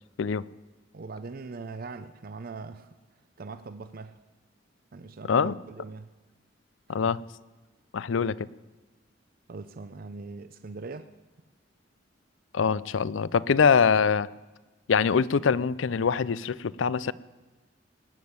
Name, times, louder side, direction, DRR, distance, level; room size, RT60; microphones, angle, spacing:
voice 1, 0.9-2.9 3.4-4.2 4.9-6.1 9.5-11.1, right 3 dB, 50° right, 11 dB, 0.6 m, -41 dB
voice 2, 6.9-7.2 7.9-8.5 12.5-14.3 14.9-17.1, left 6 dB, 80° left, 20 dB, 0.5 m, -24 dB
18.5 x 7.4 x 9.5 m, 1.2 s
head